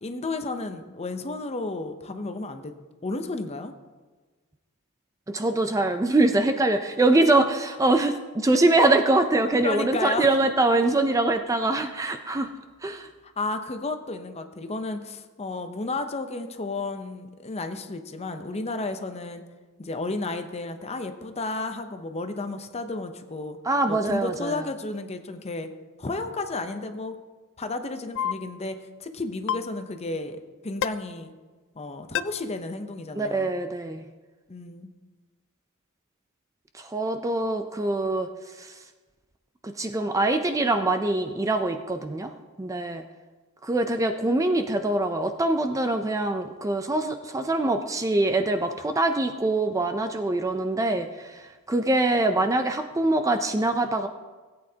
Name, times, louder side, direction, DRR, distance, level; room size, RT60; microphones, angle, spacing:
voice 1, 0.0-2.7 3.0-3.7 9.6-10.3 13.2-19.4 19.8-23.6 23.9-25.7 26.0-27.2 27.6-31.3 31.8-33.5 34.5-34.9, left 2 dB, 30° left, 8 dB, 0.7 m, -32 dB
voice 2, 5.3-12.5 12.8-13.1 23.6-24.6 33.2-34.0 36.7-38.3 38.6-38.8 39.6-42.3 42.6-43.0 43.6-54.1, right 2 dB, 15° right, 7 dB, 0.4 m, -24 dB
sound 1, 28.1-28.3 29.5-29.6 30.8-30.9 32.1-32.2, left 10 dB, 60° left, 0.3 m, -25 dB
17.0 x 8.6 x 2.8 m, 1.3 s
head